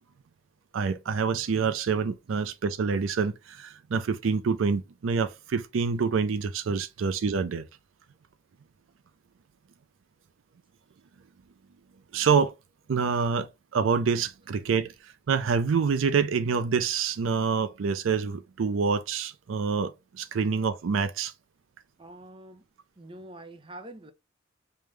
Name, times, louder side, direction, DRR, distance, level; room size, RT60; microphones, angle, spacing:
voice 1, 0.7-7.6 12.1-12.5 12.9-13.5 13.7-14.9 15.3-21.3, right 5 dB, 85° right, 0.4 m, -26 dB
voice 2, 22.0-22.7 23.0-24.1, right 1 dB, 25° right, 0.6 m, -45 dB
5.1 x 2.2 x 3.2 m
head